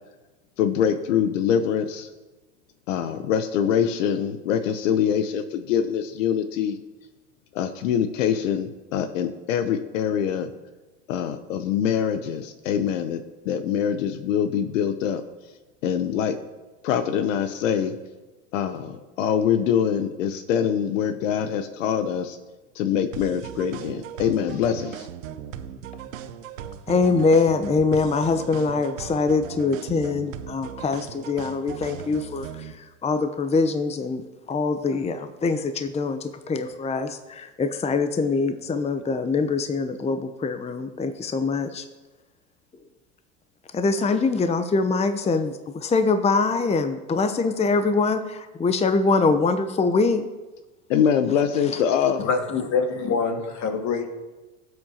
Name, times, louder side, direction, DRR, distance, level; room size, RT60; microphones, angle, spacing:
voice 1, 0.6-2.1 2.9-6.8 7.5-10.5 11.1-15.2 15.8-16.3 16.8-17.9 18.5-22.4 22.7-25.1 50.9-52.3, left 8 dB, 75° left, 9 dB, 0.9 m, -24 dB
sound 1, 23.1-32.7, right 9 dB, 85° right, 0.8 m, -38 dB
voice 2, 26.9-41.9 43.7-50.3, left 4 dB, 15° left, 9 dB, 0.8 m, -23 dB
voice 3, 52.2-54.1, left 5 dB, 45° left, 5 dB, 1.9 m, -25 dB
17.0 x 7.9 x 2.9 m, 1.1 s
hypercardioid pair, 85°, 38 cm